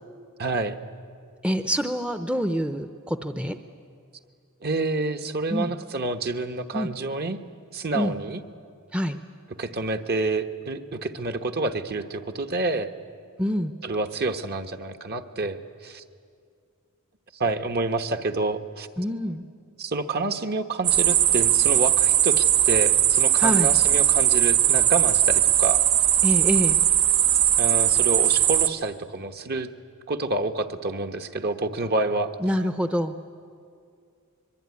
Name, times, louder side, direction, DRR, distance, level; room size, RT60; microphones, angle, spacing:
voice 1, 0.4-0.8 4.6-7.4 7.7-8.4 9.6-12.9 13.8-16.0 17.3-18.9 19.8-25.8 27.6-29.7 30.1-32.3, right 3 dB, 45° right, 8 dB, 1.2 m, -28 dB
voice 2, 1.4-3.6 5.5-5.7 6.7-6.9 7.9-8.1 8.9-9.2 13.4-13.8 19.0-19.5 23.4-23.7 26.2-26.8 32.4-33.1, equal, 5° right, 8 dB, 0.7 m, -26 dB
sound 1, 20.8-28.7, right 11 dB, 65° right, 1.0 m, -19 dB
24.5 x 22.5 x 9.6 m, 2.3 s
head